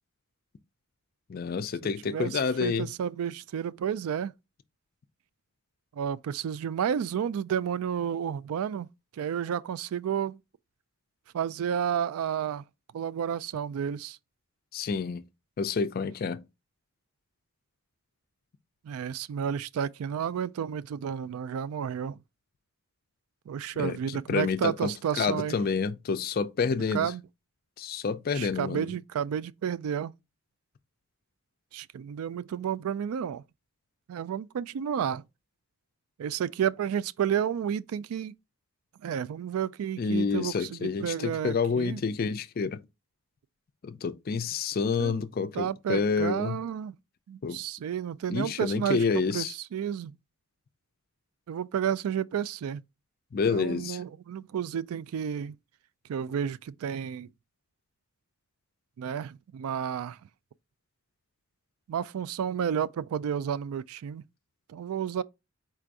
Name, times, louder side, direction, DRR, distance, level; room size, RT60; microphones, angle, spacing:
voice 1, 1.3-2.9 14.7-15.2 15.6-16.4 23.8-27.1 27.8-28.9 40.0-42.8 43.8-46.6 47.4-47.6 48.3-49.5 53.3-54.0, left 5 dB, 40° left, 0.3 m, -29 dB
voice 2, 1.8-4.3 5.9-8.9 9.1-10.4 11.3-12.6 12.9-14.2 18.8-22.2 23.5-25.6 26.9-27.2 28.3-30.1 31.7-33.4 34.1-35.3 36.2-38.3 39.0-42.0 45.0-45.2 45.5-46.9 47.3-50.2 51.5-52.8 53.5-55.6 56.1-57.3 59.0-60.2 61.9-64.2 64.7-65.2, right 8 dB, 80° right, 0.3 m, -31 dB
4.5 x 2.5 x 4.5 m
head